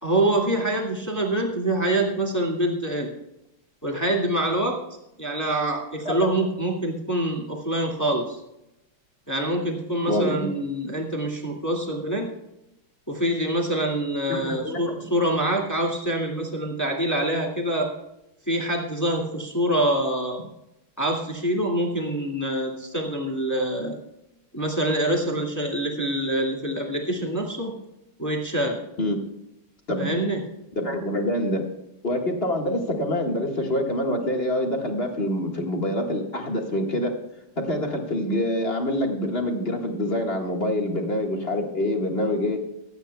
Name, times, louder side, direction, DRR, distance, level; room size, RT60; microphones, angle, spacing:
voice 1, 0.0-3.1 3.8-4.8 5.2-8.4 9.3-12.3 13.1-17.9 18.5-20.4 21.0-24.0 24.5-27.7 28.2-28.8 30.0-30.4, right 1 dB, 10° left, -1 dB, 1.8 m, -25 dB
voice 2, 10.1-10.5 14.3-15.1 29.0-29.2 29.9-30.2 30.7-31.6 32.0-37.1 37.6-42.6, left 1 dB, 30° left, 1 dB, 1.7 m, -26 dB
24.5 x 9.4 x 2.3 m, 0.89 s
omnidirectional pair, 2.4 m